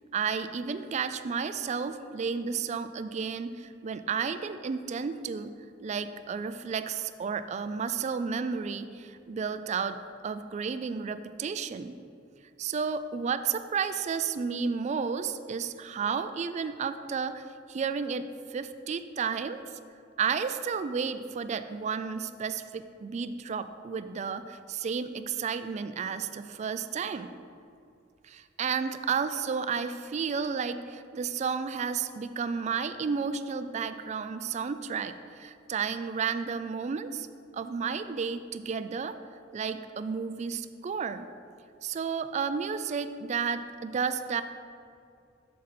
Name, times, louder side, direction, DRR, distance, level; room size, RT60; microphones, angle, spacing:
voice 1, 0.1-5.5 5.8-10.0 10.2-11.9 12.6-17.4 17.7-19.6 20.2-27.3 28.2-37.3 37.5-39.2 39.5-41.3 41.8-44.4, right 6 dB, 35° right, 11 dB, 0.3 m, -32 dB
8.1 x 6.4 x 4.2 m, 2.5 s
head